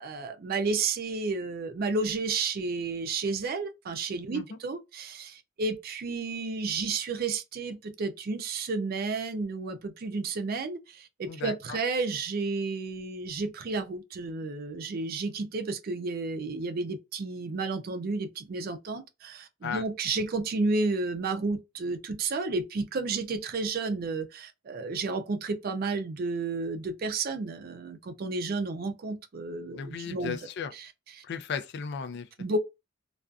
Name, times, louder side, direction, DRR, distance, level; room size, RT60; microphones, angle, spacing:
voice 1, 0.0-30.4 31.2-31.3 32.4-32.6, right 3 dB, 50° right, 0.4 m, -32 dB
voice 2, 11.3-11.8 19.6-19.9 20.2-20.3 29.7-30.7 31.2-32.3, left 6 dB, 55° left, 0.3 m, -36 dB
2.5 x 2.3 x 2.2 m
head